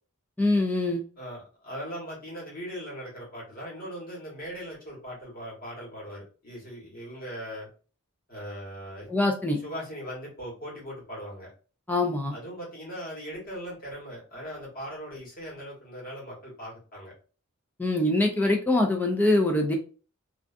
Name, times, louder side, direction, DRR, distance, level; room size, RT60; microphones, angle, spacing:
voice 1, 0.4-1.0 9.1-9.6 11.9-12.3 17.8-19.8, left 2 dB, 10° left, 2 dB, 0.3 m, -24 dB
voice 2, 1.2-7.7 8.3-9.1 9.6-11.5 12.3-17.1, equal, 45° left, -5 dB, 1.2 m, -39 dB
2.5 x 2.3 x 2.4 m, 0.37 s
head